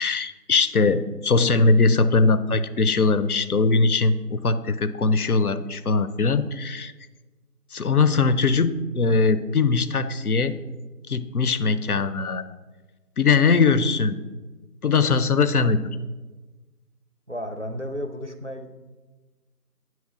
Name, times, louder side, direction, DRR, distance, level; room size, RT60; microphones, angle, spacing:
voice 1, 0.0-6.9 7.7-10.6 11.1-12.4 13.2-14.2 14.8-15.8, left 4 dB, 65° left, 13 dB, 0.5 m, -21 dB
voice 2, 17.3-18.7, equal, 50° right, 7 dB, 0.5 m, -33 dB
9.2 x 3.1 x 5.9 m, 1.2 s
figure-of-eight pair, 175°, 48 cm